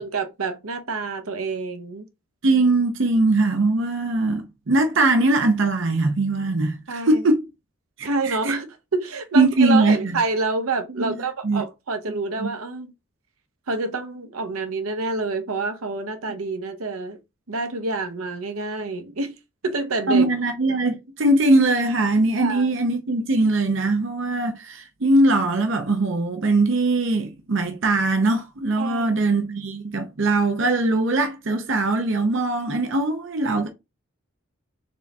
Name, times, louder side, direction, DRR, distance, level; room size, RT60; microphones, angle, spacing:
voice 1, 0.0-2.0 6.9-7.2 8.0-8.6 8.9-12.9 13.7-17.2 17.5-19.4 19.6-20.2 22.4-22.7 28.8-29.2, right 3 dB, 90° right, 0.9 m, -27 dB
voice 2, 2.4-7.4 8.0-8.6 9.3-10.2 11.0-11.2 11.4-11.6 12.1-12.5 20.1-33.7, right 2 dB, 60° right, 0.7 m, -21 dB
4.2 x 3.5 x 2.8 m
head